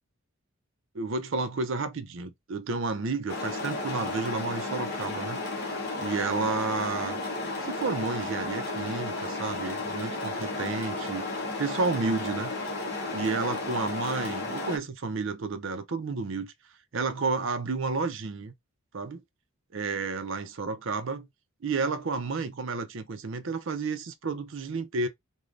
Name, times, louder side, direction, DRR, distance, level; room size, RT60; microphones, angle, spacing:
voice 1, 0.9-5.7 6.0-7.2 7.6-11.3 11.6-12.5 13.1-16.5 16.9-18.5 18.9-19.2 19.7-21.3 21.6-25.1, right 4 dB, 60° right, 0.5 m, -31 dB
sound 1, 3.3-14.8, left 2 dB, 45° left, 0.9 m, -33 dB
3.2 x 2.2 x 2.5 m
head